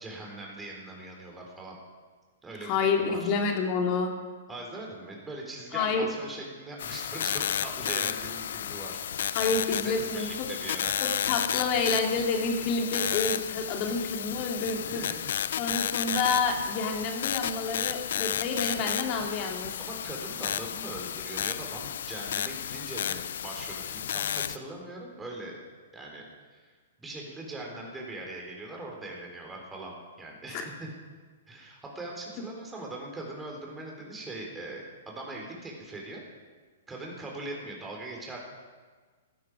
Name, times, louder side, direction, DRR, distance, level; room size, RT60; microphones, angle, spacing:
voice 1, 0.0-1.8 2.4-3.3 4.5-9.0 9.7-10.9 14.0-14.1 14.3-15.3 19.8-25.6 25.9-26.2 26.5-26.7 27.0-30.9 31.5-36.2 36.9-38.4, right 2 dB, 10° right, -1 dB, 4.1 m, -41 dB
voice 2, 2.6-4.1 5.7-6.1 9.3-10.5 11.0-15.1 15.6-19.7 30.5-30.6, left 4 dB, 40° left, 3 dB, 2.5 m, -29 dB
sound 1, 6.8-24.6, left 9 dB, 65° left, 0.5 m, -32 dB
16.5 x 12.5 x 5.0 m, 1.4 s
hypercardioid pair, 115°, 0 cm